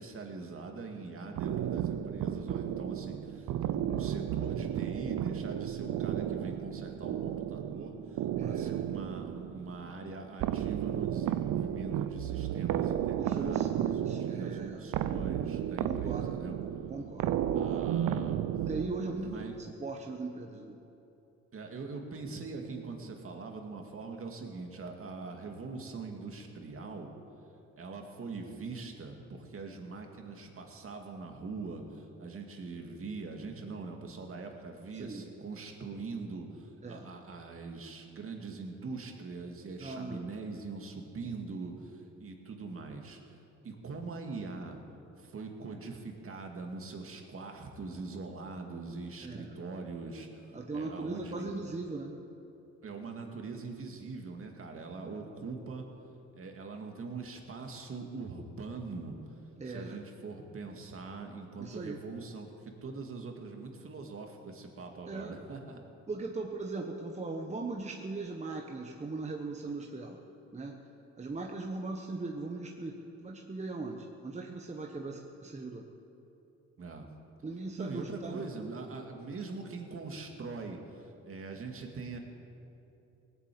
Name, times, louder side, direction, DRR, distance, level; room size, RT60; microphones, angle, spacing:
voice 1, 0.0-16.5 17.5-18.5 19.1-19.5 21.5-27.1 27.8-43.4 43.6-44.8 45.2-51.6 52.8-55.9 56.3-59.4 59.7-65.8 76.8-77.1 77.8-82.2, right 4 dB, 45° right, 3 dB, 2.2 m, -42 dB
sound 1, 1.4-19.5, right 10 dB, 75° right, 0.7 m, -33 dB
voice 2, 8.3-8.8 13.2-14.8 15.8-16.4 16.9-17.8 18.7-20.8 34.9-35.2 36.8-37.1 39.8-40.3 49.2-49.5 50.5-52.2 59.6-60.0 61.6-62.0 65.1-65.4 66.1-70.2 70.5-70.9 71.2-75.8 77.4-78.4, right 3 dB, 25° right, 1 dB, 1.1 m, -39 dB
18.5 x 7.7 x 8.5 m, 2.9 s
cardioid pair, 90°, 30 cm